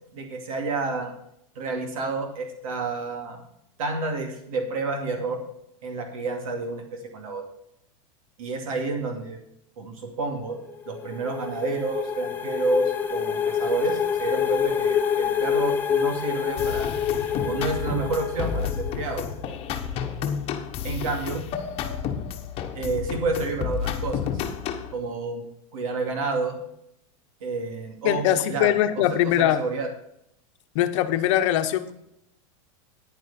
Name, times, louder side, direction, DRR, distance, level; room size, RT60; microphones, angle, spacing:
voice 1, 0.1-1.1 1.6-3.4 3.8-5.4 5.8-7.4 8.4-9.4 9.8-10.6 10.9-16.9 17.4-19.2 20.8-21.4 22.7-24.2 24.9-25.4 25.7-26.6 27.4-29.0 29.4-29.9, right 3 dB, 85° right, 3 dB, 2.5 m, -29 dB
sound 1, 10.7-19.4, left 7 dB, 10° left, 0.9 m, -27 dB
sound 2, 16.6-24.9, left 7 dB, 35° left, 1.2 m, -31 dB
voice 2, 28.0-29.6 30.7-31.9, left 12 dB, 60° left, 9 dB, 1.0 m, -22 dB
10.0 x 9.5 x 4.3 m, 0.77 s
supercardioid pair, 145°, 17 cm